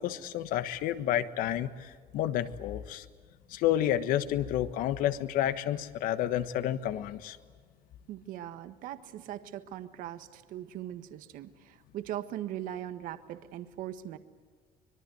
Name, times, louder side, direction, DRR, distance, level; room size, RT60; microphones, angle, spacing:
voice 1, 0.0-3.0 3.5-7.4, left 12 dB, 70° left, 12 dB, 1.4 m, -30 dB
voice 2, 8.1-14.2, right 12 dB, 65° right, 10 dB, 1.5 m, -40 dB
25.0 x 22.5 x 9.3 m, 1.5 s
cardioid pair, 140°, 15 cm